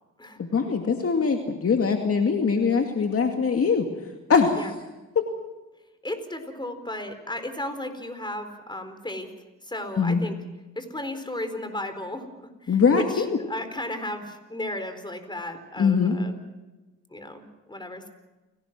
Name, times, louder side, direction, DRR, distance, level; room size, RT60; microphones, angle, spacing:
voice 1, 0.4-3.9 4.3-4.6 5.2-5.3 10.0-10.2 12.7-13.3 15.8-16.2, left 5 dB, 45° left, 4 dB, 2.3 m, -22 dB
voice 2, 6.0-9.3 9.6-10.3 10.8-16.4 17.1-18.1, left 1 dB, 15° left, 9 dB, 4.2 m, -34 dB
29.5 x 18.0 x 6.1 m, 1.1 s
cardioid pair, 70°, 31 cm